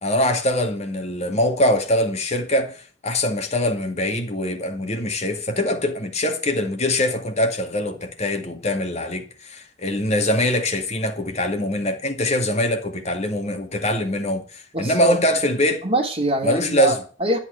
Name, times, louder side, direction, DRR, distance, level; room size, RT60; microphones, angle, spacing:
voice 1, 0.0-15.8 16.4-17.0, left 1 dB, 35° left, 2.1 m, -23 dB
voice 2, 14.7-15.1 15.8-17.4, right 2 dB, 30° right, 2.7 m, -23 dB
12.5 x 8.0 x 8.0 m
head